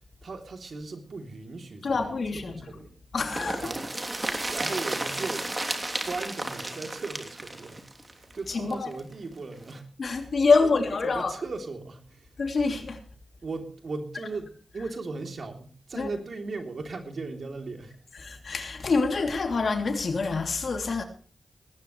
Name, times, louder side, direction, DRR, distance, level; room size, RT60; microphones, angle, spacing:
voice 1, 0.2-2.1 2.3-3.0 3.6-3.8 4.5-5.5 6.0-9.9 10.2-10.3 10.6-12.4 13.4-18.0, right 3 dB, 70° right, 3.3 m, -37 dB
voice 2, 1.8-2.5 3.1-3.7 8.5-8.9 10.0-11.3 12.4-13.0 16.0-16.1 18.2-21.0, left 4 dB, 70° left, 3.0 m, -26 dB
sound 1, 3.3-9.0 9.3-9.4 9.7-9.8, right 2 dB, 30° right, 3.1 m, -33 dB
19.0 x 15.0 x 3.3 m
cardioid pair, 50°, 0 cm